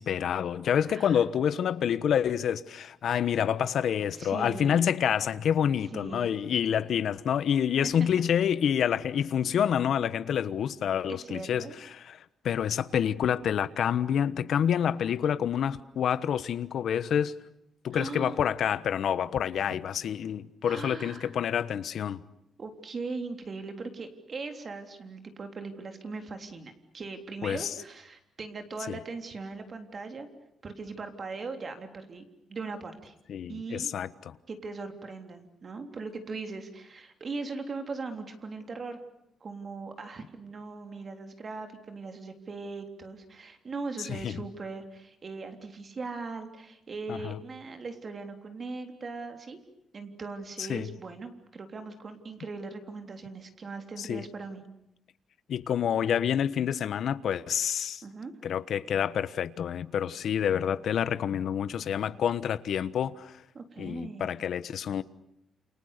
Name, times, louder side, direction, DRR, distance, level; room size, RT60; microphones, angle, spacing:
voice 1, 0.0-12.2 12.4-17.3 17.8-22.2 27.4-27.7 28.9-29.0 33.3-34.4 44.1-44.4 47.1-47.4 50.6-50.9 54.0-54.2 55.5-58.0 58.4-63.4 63.8-65.0, left 8 dB, 60° left, 1.2 m, -28 dB
voice 2, 0.9-1.2 4.1-4.9 5.9-6.4 7.8-8.1 11.1-11.8 17.9-18.4 20.6-21.3 22.6-30.3 30.6-32.2 32.5-33.1 33.5-33.9 34.5-39.0 39.4-49.6 49.9-54.6 58.0-58.3 63.5-64.3, right 3 dB, 35° right, 3.5 m, -39 dB
29.0 x 29.0 x 6.8 m
cardioid pair, 160°, 0 cm